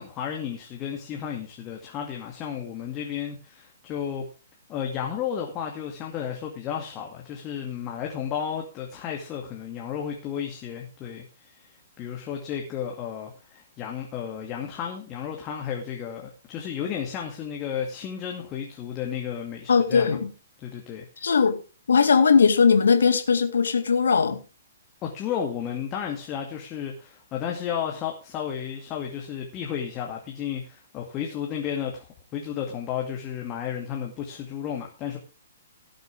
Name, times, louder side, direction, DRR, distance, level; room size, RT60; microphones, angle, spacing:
voice 1, 0.0-4.3 4.7-20.2 20.6-21.3 25.0-35.2, left 8 dB, 25° left, 2.3 m, -33 dB
voice 2, 19.7-20.3 21.2-21.6 21.9-24.4, left 5 dB, 65° left, 2.2 m, -19 dB
18.0 x 8.0 x 3.5 m
figure-of-eight pair, 120°, 0 cm